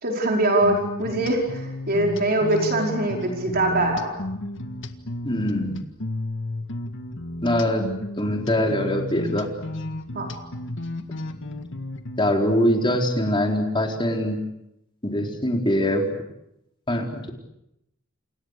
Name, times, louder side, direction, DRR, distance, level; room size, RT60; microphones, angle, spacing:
voice 1, 0.0-4.2 10.1-10.3, right 1 dB, 45° right, 1 dB, 5.1 m, -23 dB
sound 1, 0.6-12.3, left 1 dB, 60° left, 1.9 m, -33 dB
voice 2, 5.2-5.7 7.4-7.9 8.2-9.5 12.2-14.4 15.0-16.1 16.9-17.3, left 1 dB, 25° left, 2 dB, 4.3 m, -23 dB
29.5 x 28.5 x 6.8 m, 0.85 s
head